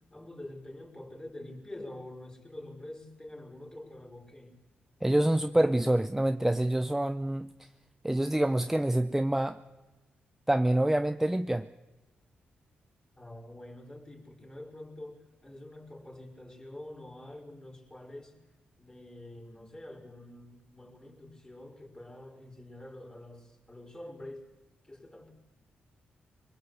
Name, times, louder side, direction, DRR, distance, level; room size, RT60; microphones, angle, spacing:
voice 1, 0.1-4.6 13.1-18.3 18.8-24.5 24.8-25.4, left 1 dB, 20° left, 5.2 m, -46 dB
voice 2, 5.0-7.7 8.0-9.6 10.5-11.7, right 1 dB, 10° right, 0.7 m, -26 dB
22.5 x 19.0 x 8.1 m
supercardioid pair, 55°, 4 cm